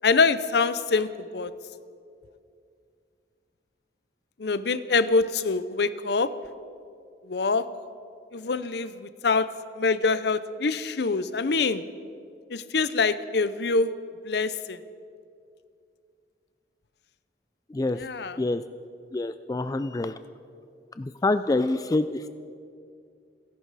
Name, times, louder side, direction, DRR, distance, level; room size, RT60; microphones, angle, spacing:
voice 1, 0.0-1.5 4.4-6.3 7.2-7.6 8.3-9.5 9.7-11.8 12.5-13.9 14.2-14.8 18.0-18.4, left 4 dB, 65° left, 14 dB, 0.6 m, -25 dB
voice 2, 19.1-20.1 21.0-22.3, left 2 dB, 20° left, 11 dB, 0.3 m, -26 dB
29.5 x 11.0 x 4.1 m, 2.4 s
head